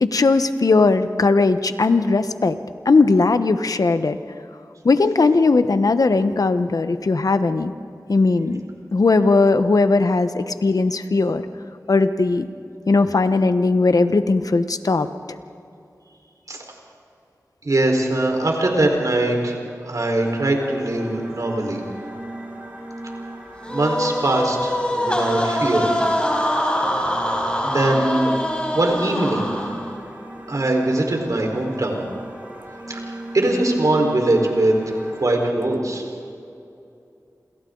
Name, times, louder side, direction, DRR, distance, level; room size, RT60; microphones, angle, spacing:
voice 1, 0.0-2.6 2.8-4.2 4.8-7.7 8.1-8.6 8.9-11.4 11.9-12.5 12.9-15.1, left 3 dB, 70° left, 10 dB, 1.1 m, -18 dB
voice 2, 17.6-21.8 23.7-26.0 27.6-28.4 28.7-29.5 30.5-32.0 32.9-36.0, right 1 dB, 65° right, 1 dB, 4.5 m, -21 dB
sound 1, 20.1-35.3, right 1 dB, 25° right, 7.2 m, -37 dB
sound 2, 23.6-30.0, equal, 15° left, 5.1 m, -24 dB
28.0 x 27.5 x 4.0 m, 2.6 s
wide cardioid pair, 45°, 6 cm